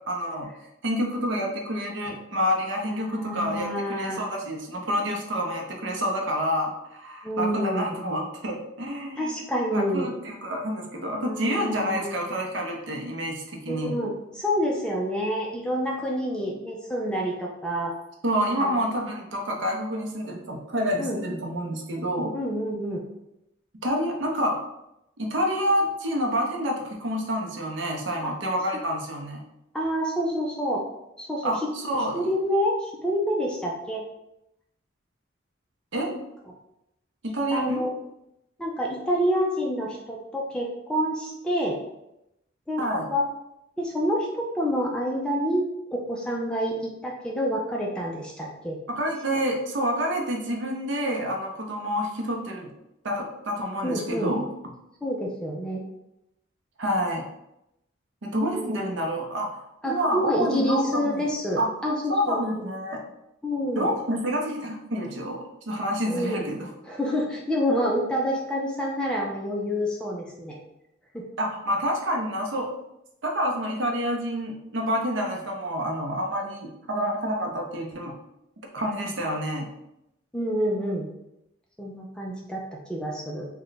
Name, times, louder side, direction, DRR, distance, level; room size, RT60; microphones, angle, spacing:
voice 1, 0.1-0.5 0.8-9.3 9.7-14.0 18.2-22.3 23.8-24.6 25.2-29.4 31.4-32.2 35.9-36.1 37.2-37.8 42.8-43.1 48.9-52.7 53.0-54.5 56.8-57.2 58.2-61.3 61.6-61.7 62.1-63.0 63.8-66.7 71.4-72.7 73.2-78.1 78.7-79.7, equal, 70° right, 1 dB, 0.7 m, -28 dB
voice 2, 2.9-4.2 7.2-8.0 9.1-10.1 11.3-12.2 13.7-17.9 18.6-18.8 21.0-21.2 22.3-23.0 28.2-28.3 29.7-30.8 31.2-31.7 32.1-34.0 37.5-37.9 38.6-41.8 42.7-42.8 43.1-43.2 43.8-44.3 44.5-45.7 45.9-48.8 53.8-54.3 55.0-55.8 58.3-58.8 59.8-62.4 63.4-63.9 66.1-66.4 66.9-70.6 71.1-71.2 80.3-81.1 81.8-83.5, equal, 5° left, -2 dB, 0.4 m, -28 dB
3.2 x 2.2 x 3.9 m, 0.85 s
head